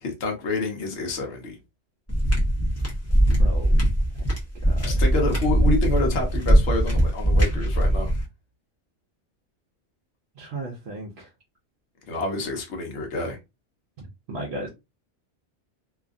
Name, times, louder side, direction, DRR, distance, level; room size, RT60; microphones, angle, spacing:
voice 1, 0.0-1.5 4.9-8.1 12.1-13.4, left 2 dB, 65° left, 1.1 m, -28 dB
sound 1, 2.1-8.2, right 1 dB, 15° left, 0.7 m, -21 dB
voice 2, 3.4-3.7 4.8-4.9 10.4-11.3 14.3-14.7, right 2 dB, 65° right, 0.9 m, -34 dB
2.7 x 2.4 x 2.4 m
omnidirectional pair, 1.2 m